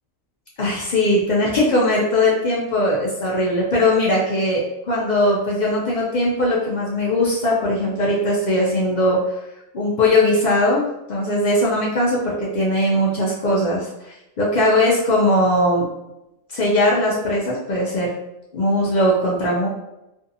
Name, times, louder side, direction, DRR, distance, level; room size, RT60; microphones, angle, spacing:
voice 1, 0.6-9.4 9.7-10.8 11.1-15.9 16.5-18.1 18.5-19.7, left 1 dB, 60° left, -4 dB, 0.4 m, -19 dB
2.5 x 2.3 x 2.6 m, 0.90 s
omnidirectional pair, 1.4 m